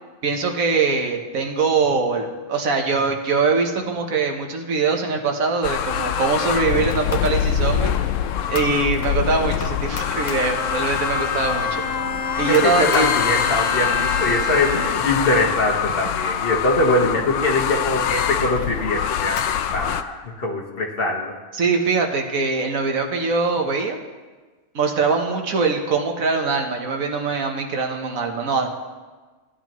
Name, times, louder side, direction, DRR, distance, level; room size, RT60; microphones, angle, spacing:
voice 1, 0.2-7.9 8.5-11.8 12.4-13.1 21.5-24.0 24.7-28.7, right 4 dB, 85° right, 3 dB, 1.5 m, -22 dB
sound 1, 5.6-20.0, left 9 dB, 75° left, 0.9 m, -24 dB
Bowed string instrument, 10.2-15.2, left 4 dB, 25° left, 0.8 m, -28 dB
voice 2, 12.3-21.3, left 2 dB, 45° left, -1 dB, 1.6 m, -23 dB
16.5 x 10.0 x 3.1 m, 1.3 s
omnidirectional pair, 1.4 m